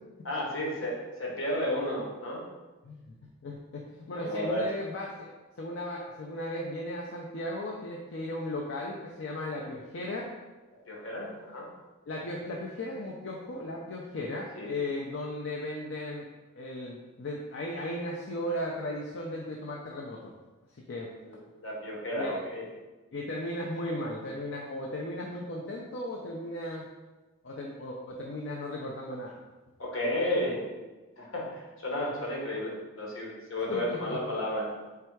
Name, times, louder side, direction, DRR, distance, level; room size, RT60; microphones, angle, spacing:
voice 1, 0.2-2.4 4.1-4.6 10.9-11.7 14.6-14.7 21.2-21.4 21.6-22.6 29.8-30.6 31.2-34.7, left 1 dB, 75° left, -2 dB, 1.2 m, -32 dB
voice 2, 3.4-5.3 5.6-10.3 12.1-16.3 16.6-20.3 20.9-21.1 22.1-22.4 23.1-26.8 27.4-29.4 33.7-34.2, left 1 dB, 60° left, -2 dB, 0.5 m, -36 dB
3.5 x 3.3 x 4.6 m, 1.2 s
head